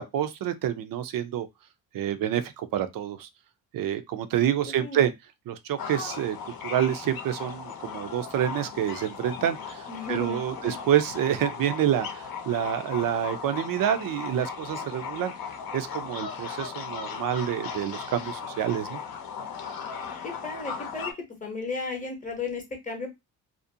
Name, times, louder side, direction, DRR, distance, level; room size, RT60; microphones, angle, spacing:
voice 1, 0.0-1.5 1.9-3.3 3.7-5.1 5.5-15.3 15.7-19.0, right 10 dB, 60° right, 0.5 m, -28 dB
voice 2, 4.6-5.1 9.9-10.8 20.2-21.1 21.4-23.1, left 4 dB, 20° left, 0.8 m, -35 dB
sound 1, 5.8-21.1, left 6 dB, 65° left, 0.7 m, -37 dB
2.5 x 2.1 x 2.6 m
cardioid pair, 110°, 39 cm